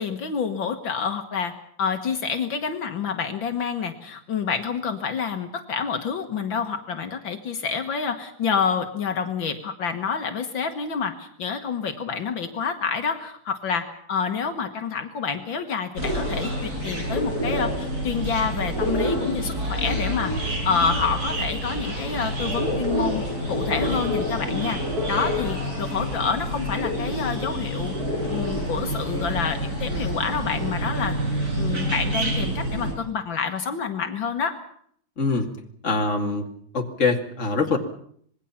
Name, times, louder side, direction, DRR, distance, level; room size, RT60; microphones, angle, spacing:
voice 1, 0.0-1.5 1.8-20.3 20.7-24.8 25.1-27.9 28.3-31.2 31.6-34.5, left 6 dB, 70° left, 5 dB, 2.2 m, -28 dB
sound 1, 16.0-32.9, equal, 50° right, 6.6 m, -27 dB
voice 2, 35.2-35.5 35.8-36.5 36.7-37.8, left 3 dB, 35° left, 3 dB, 2.6 m, -23 dB
26.0 x 20.5 x 5.8 m, 0.64 s
omnidirectional pair, 2.2 m